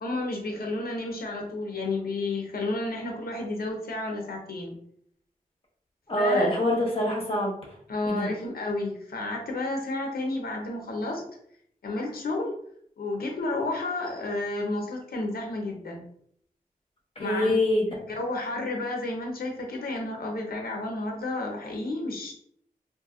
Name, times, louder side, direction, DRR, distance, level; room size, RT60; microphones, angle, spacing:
voice 1, 0.0-4.7 6.2-6.6 7.9-11.2 11.8-12.5 13.0-16.0 17.2-17.6 18.2-22.3, left 2 dB, 85° left, 1 dB, 0.6 m, -31 dB
voice 2, 6.1-7.6 8.0-8.3 17.2-17.9, left 1 dB, 40° left, -3 dB, 1.0 m, -25 dB
2.6 x 2.5 x 2.4 m, 0.65 s
cardioid pair, 50°, 15 cm